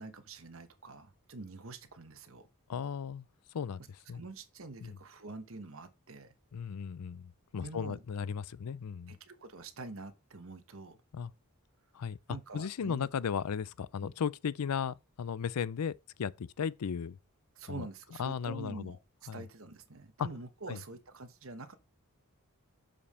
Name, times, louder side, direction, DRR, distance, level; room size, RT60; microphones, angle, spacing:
voice 1, 0.0-2.5 4.1-6.3 7.6-8.0 9.1-11.0 12.3-13.1 14.0-14.1 17.5-21.8, right 3 dB, 60° right, 1.1 m, -46 dB
voice 2, 2.7-3.2 3.5-3.8 4.1-4.2 4.8-5.0 6.5-9.2 11.1-11.3 11.9-12.2 12.5-17.2 17.7-17.9 18.2-18.9 19.3-19.4 20.2-20.3 20.7-20.8, left 7 dB, 90° left, 0.5 m, -35 dB
7.0 x 5.2 x 4.2 m
head